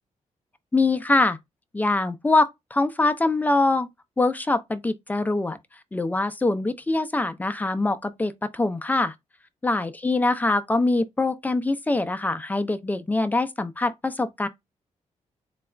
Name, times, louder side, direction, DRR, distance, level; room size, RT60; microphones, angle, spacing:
voice 1, 0.7-1.4 1.7-3.9 4.2-5.6 5.9-9.1 9.6-14.5, left 2 dB, 15° left, 0.4 m, -23 dB
4.0 x 2.3 x 3.2 m
cardioid pair, 115°, 13 cm